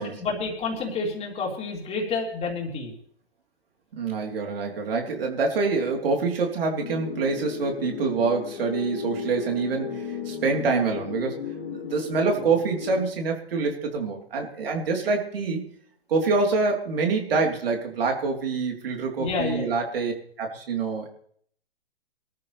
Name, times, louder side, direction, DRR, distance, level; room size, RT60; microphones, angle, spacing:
voice 1, 0.0-2.9 19.2-19.7, left 4 dB, 20° left, 0 dB, 3.7 m, -29 dB
voice 2, 3.9-11.4 11.8-15.6 16.1-21.1, right 4 dB, 60° right, 1 dB, 3.9 m, -26 dB
sound 1, 6.8-13.0, left 6 dB, 45° left, 3.3 m, -35 dB
22.0 x 13.5 x 3.5 m, 0.62 s
hypercardioid pair, 130°, 32 cm